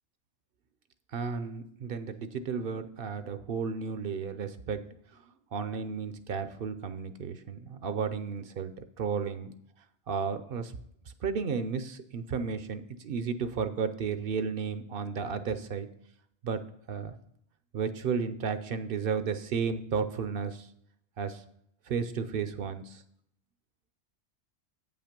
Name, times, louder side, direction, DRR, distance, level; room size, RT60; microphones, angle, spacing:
voice 1, 1.1-4.8 5.5-8.7 9.0-9.5 10.1-10.7 11.2-15.9 16.4-16.6 16.9-17.1 17.7-20.7 21.2-21.4 21.9-23.0, right 6 dB, 60° right, 11 dB, 0.7 m, -33 dB
8.3 x 5.7 x 5.1 m, 0.73 s
omnidirectional pair, 1.2 m